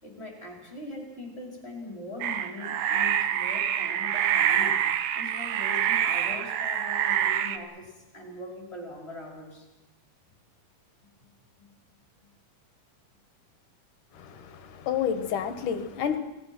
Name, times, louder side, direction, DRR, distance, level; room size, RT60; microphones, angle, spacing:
voice 1, 0.0-4.8 5.1-9.7, left 2 dB, 15° left, 1 dB, 5.0 m, -41 dB
sound 1, 2.2-7.6, right 10 dB, 85° right, 3.0 m, -26 dB
voice 2, 14.1-16.2, left 8 dB, 65° left, 10 dB, 2.9 m, -30 dB
29.5 x 20.0 x 6.1 m, 0.99 s
omnidirectional pair, 4.1 m